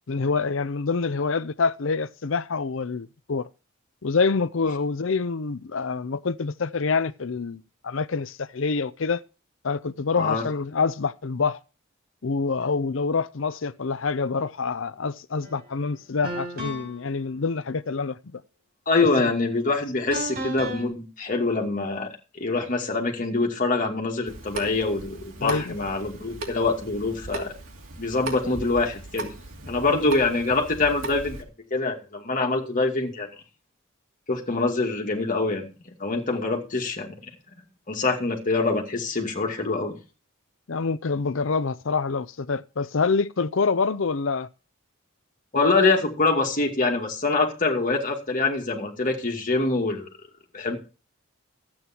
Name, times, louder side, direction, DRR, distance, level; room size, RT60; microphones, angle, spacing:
voice 1, 0.1-3.5 4.0-9.2 9.6-11.6 12.2-18.4 25.4-25.8 29.9-30.2 40.7-44.5, left 4 dB, 65° left, 0.6 m, -26 dB
voice 2, 10.1-10.4 18.9-22.1 22.4-27.5 28.0-29.3 29.7-31.4 31.7-33.3 34.3-37.1 37.9-39.9 45.5-50.1 50.5-50.8, left 3 dB, 40° left, 2.4 m, -25 dB
sound 1, 15.4-15.6 16.2-17.0 20.1-20.9, right 1 dB, 50° right, 5.3 m, -33 dB
Water tap faucet / Sink (filling or washing) / Drip, 24.3-31.4, right 2 dB, 85° right, 2.7 m, -37 dB
12.5 x 8.9 x 4.4 m
head